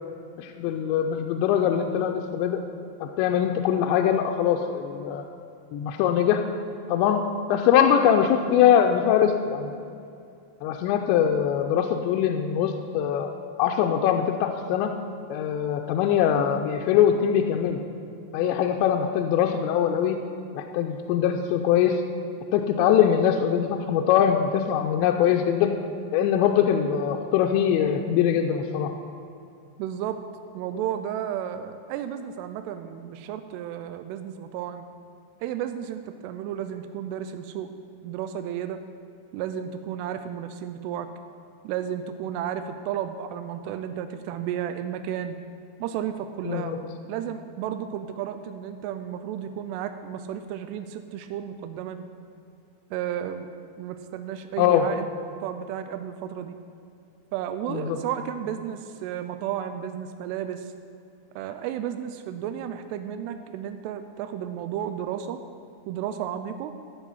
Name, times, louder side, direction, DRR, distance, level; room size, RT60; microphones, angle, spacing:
voice 1, 0.4-2.6 3.0-5.3 5.7-6.4 6.9-7.2 7.5-9.7 10.6-13.3 13.6-15.0 15.3-17.8 18.3-20.2 20.5-22.0 22.5-25.7 26.1-28.9 46.5-46.8 54.6-54.9 57.7-58.0, left 9 dB, 85° left, 3 dB, 2.8 m, -22 dB
voice 2, 29.8-30.2 30.5-34.9 35.4-37.7 38.0-38.8 39.3-41.1 41.6-45.4 45.8-46.7 47.1-52.1 52.9-53.5 53.8-55.1 55.4-56.6 57.3-60.7 61.4-65.4 65.9-66.7, right 10 dB, 85° right, 8 dB, 2.4 m, -33 dB
13.5 x 7.9 x 5.6 m, 2.5 s
omnidirectional pair, 5.2 m